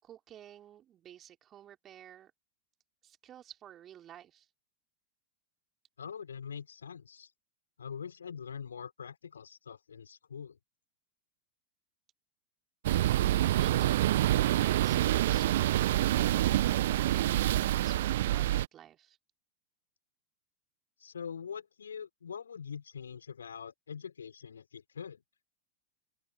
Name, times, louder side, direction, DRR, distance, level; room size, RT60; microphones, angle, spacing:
voice 1, 0.0-2.3 3.0-4.5 13.5-19.2, right 11 dB, 30° right, 5.2 m, -52 dB
voice 2, 6.0-7.3 7.8-10.6 21.0-25.2, left 7 dB, 70° left, 5.3 m, -43 dB
sound 1, 12.8-18.7, right 14 dB, 55° right, 1.2 m, -27 dB
open air
figure-of-eight pair, 90°, 0 cm